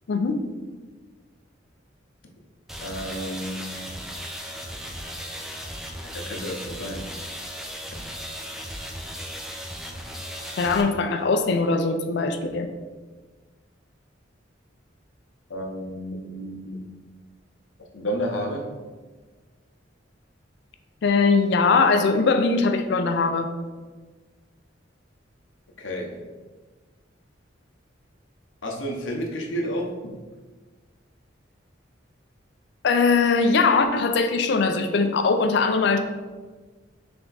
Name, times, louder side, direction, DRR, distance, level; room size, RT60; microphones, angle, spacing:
voice 1, 0.1-0.4 10.6-12.7 21.0-23.5 32.8-36.0, left 4 dB, 65° left, 7 dB, 0.4 m, -21 dB
sound 1, 2.7-10.8, equal, ahead, 0.4 m, -36 dB
voice 2, 2.8-3.8 6.0-7.1 15.5-16.9 17.9-18.8 25.8-26.2 28.6-29.9, equal, 90° left, 1 dB, 0.7 m, -31 dB
3.4 x 3.4 x 3.9 m, 1.4 s
head